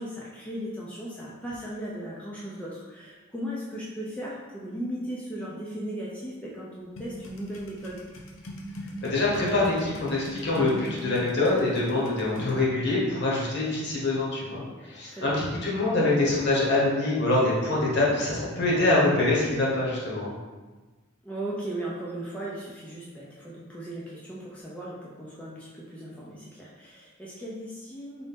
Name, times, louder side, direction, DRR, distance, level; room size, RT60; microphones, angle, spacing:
voice 1, 0.0-8.0 15.1-15.3 17.7-18.2 21.2-28.3, right 1 dB, 5° left, -7 dB, 0.4 m, -37 dB
sound 1, 6.9-12.6, equal, 70° left, 0.6 m, -41 dB
voice 2, 9.0-20.3, left 2 dB, 55° left, -5 dB, 1.1 m, -25 dB
4.0 x 2.6 x 3.5 m, 1.3 s
head